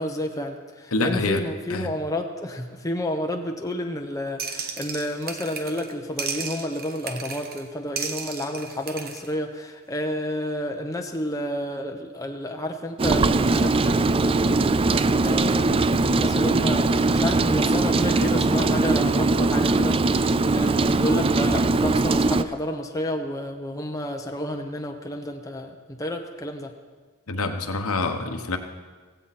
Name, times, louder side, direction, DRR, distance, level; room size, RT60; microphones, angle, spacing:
voice 1, 0.0-26.7, left 1 dB, 15° left, 3 dB, 0.9 m, -30 dB
voice 2, 0.9-1.4 1.7-1.9 27.3-28.6, left 3 dB, 70° left, 6 dB, 1.2 m, -26 dB
sound 1, 4.4-5.9 6.2-7.6 8.0-9.3, right 5 dB, 45° right, 1.1 m, -34 dB
Rain, 13.0-22.4, right 3 dB, 25° right, 0.3 m, -21 dB
16.0 x 15.5 x 4.3 m, 1.4 s
head